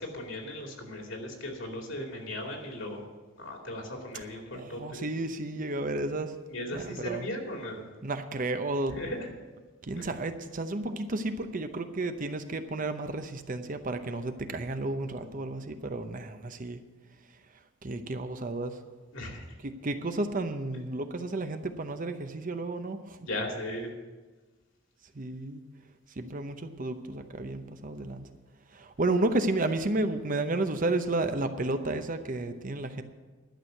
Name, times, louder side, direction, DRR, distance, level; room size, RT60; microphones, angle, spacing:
voice 1, 0.0-3.0 3.4-5.1 6.5-7.8 9.0-9.3 10.0-10.1 15.2-15.4 19.1-19.4 23.2-23.9, left 1 dB, 70° left, 1 dB, 2.6 m, -37 dB
voice 2, 4.5-6.3 6.7-7.3 8.0-9.0 9.8-16.8 17.8-18.7 19.6-23.3 25.1-25.6 26.2-28.3 28.7-33.0, right 2 dB, 40° right, 8 dB, 0.7 m, -32 dB
11.5 x 6.3 x 9.2 m, 1.3 s
head